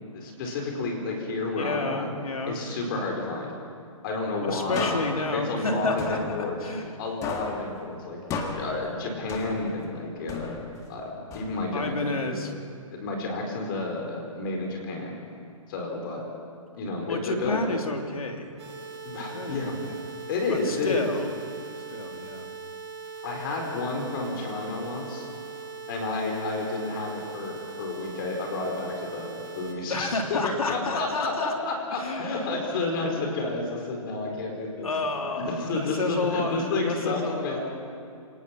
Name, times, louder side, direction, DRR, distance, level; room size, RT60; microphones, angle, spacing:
voice 1, 0.1-2.1 2.5-3.5 4.0-4.9 5.3-6.7 7.0-8.2 8.6-10.5 10.8-12.4 12.9-15.1 15.7-16.2 16.8-17.6 19.0-19.8 20.3-21.1 23.2-25.3 25.9-34.9 35.3-37.6, left 3 dB, 40° left, 1 dB, 4.4 m, -30 dB
voice 2, 1.6-2.6 4.4-6.9 11.7-12.5 17.1-18.5 19.3-19.8 20.5-21.3 21.9-22.5 29.9-31.5 31.9-32.5 34.8-37.6, left 2 dB, 80° left, 3 dB, 3.1 m, -30 dB
sound 1, 4.7-7.0 7.2-9.9 10.3-11.9, left 4 dB, 15° left, 1.9 m, -35 dB
sound 2, 18.6-29.7, right 5 dB, 50° right, 5.6 m, -40 dB
27.5 x 19.0 x 5.9 m, 2.5 s
hypercardioid pair, 140°, 18 cm